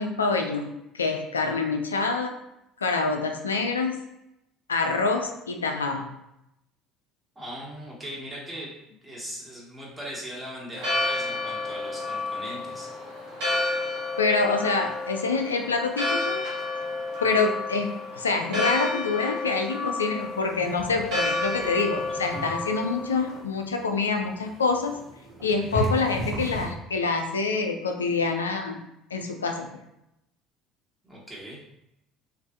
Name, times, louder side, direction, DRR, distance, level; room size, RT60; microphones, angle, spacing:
voice 1, 0.0-2.3 2.8-4.0 4.7-6.1 14.2-16.4 17.2-25.0 25.4-28.8 29.1-29.7, left 4 dB, 85° left, 4 dB, 0.3 m, -26 dB
voice 2, 7.3-12.9 25.7-26.0 31.0-31.6, equal, 15° right, -5 dB, 1.4 m, -39 dB
Church bell, 10.7-23.4, left 2 dB, 65° right, 0.9 m, -31 dB
sound 1, 20.2-26.7, right 1 dB, 45° right, 1.1 m, -36 dB
3.2 x 2.4 x 2.5 m, 0.85 s
figure-of-eight pair, 60°, 0 cm